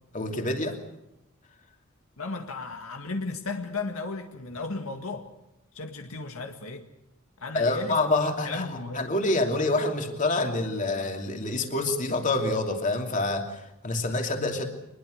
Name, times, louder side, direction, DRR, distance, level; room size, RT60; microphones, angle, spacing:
voice 1, 0.1-0.8 7.5-14.7, left 2 dB, 35° left, 4 dB, 2.8 m, -27 dB
voice 2, 2.2-5.3 5.7-6.9 7.4-8.0 8.4-9.1, left 3 dB, 80° left, 5 dB, 2.0 m, -34 dB
24.0 x 21.0 x 6.6 m, 0.88 s
head